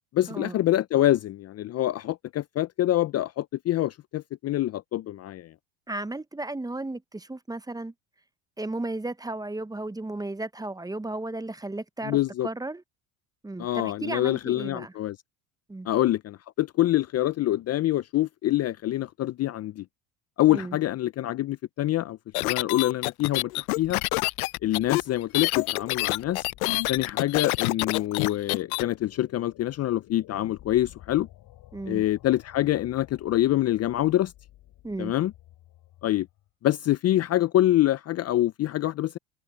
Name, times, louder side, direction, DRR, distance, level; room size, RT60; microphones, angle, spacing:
voice 1, 0.1-5.5 12.0-12.5 13.6-15.2 15.8-19.8 20.4-24.0 24.6-26.5 26.9-31.3 31.9-34.3 35.0-35.3 36.0-36.3 36.6-39.2, left 14 dB, 35° left, 0.6 m, -25 dB
voice 2, 5.9-7.9 8.6-12.8 13.4-14.9 15.7-15.9 20.5-20.8 31.7-32.0 34.8-35.1, right 2 dB, 10° right, 1.0 m, -34 dB
sound 1, 22.3-28.8, left 22 dB, 85° left, 0.7 m, -27 dB
sound 2, 23.5-36.5, left 14 dB, 55° left, 7.8 m, -53 dB
supercardioid pair, 85°, 43 cm